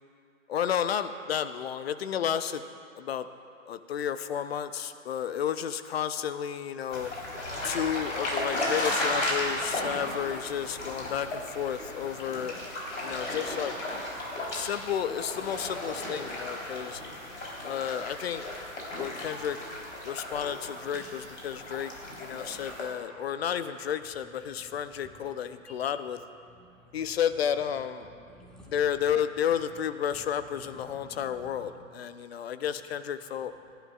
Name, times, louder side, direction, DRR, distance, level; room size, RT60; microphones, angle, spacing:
voice 1, 0.5-2.6 3.0-3.3 3.7-7.1 7.6-12.5 13.0-13.7 14.5-17.0 17.6-18.4 18.9-19.6 20.0-21.9 22.2-26.2 26.9-28.1 28.7-33.5, left 9 dB, 50° left, 11 dB, 0.7 m, -32 dB
sound 1, 6.9-22.8, left 1 dB, 70° left, 3.9 m, -35 dB
voice 2, 17.2-17.7 23.1-23.2 24.5-25.4 25.7-25.9 26.5-27.2 28.0-28.8 30.1-30.2 30.5-31.9, left 1 dB, ahead, -2 dB, 1.3 m, -54 dB
28.5 x 11.5 x 2.4 m, 2.4 s
figure-of-eight pair, 115°, 40 cm